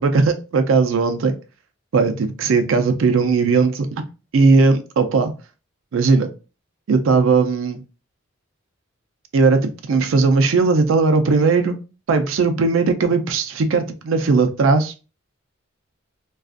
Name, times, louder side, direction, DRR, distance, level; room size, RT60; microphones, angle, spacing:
voice 1, 0.0-1.4 1.9-3.9 4.3-5.3 5.9-6.3 6.9-7.8 9.3-11.8 12.1-14.9, right 4 dB, 75° right, 0.4 m, -17 dB
2.4 x 2.4 x 2.4 m
head